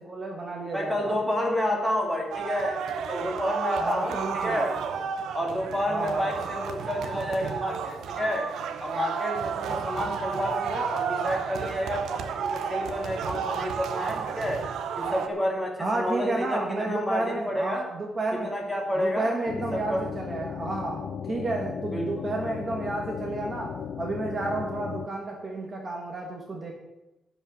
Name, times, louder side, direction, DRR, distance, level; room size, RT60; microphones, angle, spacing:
voice 1, 0.0-1.1 3.8-4.7 5.9-6.3 15.8-18.5 19.0-26.7, right 2 dB, 30° right, 0 dB, 1.5 m, -31 dB
voice 2, 0.7-4.8 5.3-8.5 8.8-14.6 15.0-17.9 18.3-19.3 19.7-20.0 21.8-22.1, left 1 dB, 5° left, -1 dB, 2.5 m, -30 dB
sound 1, 2.3-15.3, right 7 dB, 75° right, 0.9 m, -32 dB
sound 2, 19.5-25.1, left 8 dB, 60° left, 0.6 m, -36 dB
11.5 x 5.5 x 8.6 m, 0.97 s
cardioid pair, 160°, 0 cm